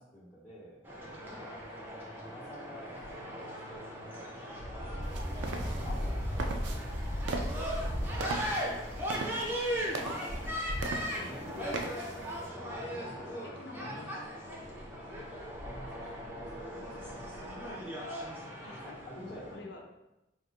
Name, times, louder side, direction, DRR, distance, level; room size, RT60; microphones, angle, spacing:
voice 1, 0.0-4.8 5.1-8.6 9.1-10.5 11.1-11.8 12.7-13.2 13.8-14.2 15.6-17.6 18.7-19.9, left 1 dB, 30° left, -13 dB, 1.1 m, -51 dB
sound 1, 0.8-19.6, equal, 10° right, 0.6 m, -37 dB
sound 2, 2.9-16.6 16.9-18.1, left 1 dB, 75° left, 1.1 m, -57 dB
sound 3, 5.0-12.5, right 3 dB, 70° right, 0.4 m, -41 dB
voice 2, 9.8-10.5 11.5-11.9 12.8-14.9 18.6-19.8, left 3 dB, 60° left, 3 dB, 0.5 m, -50 dB
5.1 x 2.5 x 2.4 m, 0.92 s
head